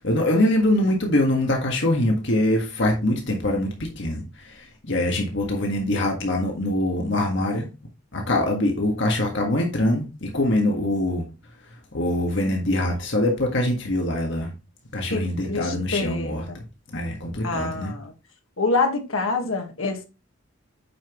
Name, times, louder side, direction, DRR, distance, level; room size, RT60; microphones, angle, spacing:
voice 1, 0.0-7.7 8.1-11.3 11.9-14.5 14.9-16.6 16.9-17.9, left 1 dB, 60° left, 1.7 m, -23 dB
voice 2, 15.1-16.6 17.4-18.1 18.6-20.0, left 3 dB, 75° left, 1.6 m, -26 dB
8.5 x 5.8 x 3.0 m
head